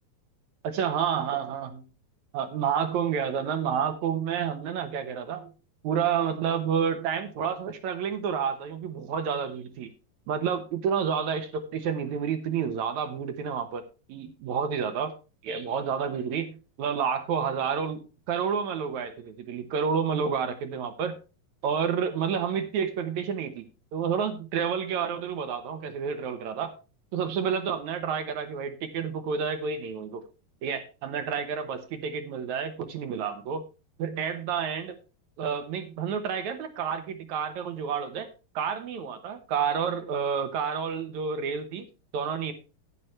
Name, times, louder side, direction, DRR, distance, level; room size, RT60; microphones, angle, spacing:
voice 1, 0.6-1.8 2.3-5.5 5.8-9.9 10.3-13.8 14.1-15.1 15.4-21.2 21.6-23.7 23.9-26.7 27.1-30.2 30.6-33.6 34.0-35.0 35.4-38.3 38.6-41.8 42.1-42.5, right 7 dB, 65° right, 9 dB, 2.0 m, -29 dB
11.0 x 10.0 x 3.2 m, 0.31 s
omnidirectional pair, 4.1 m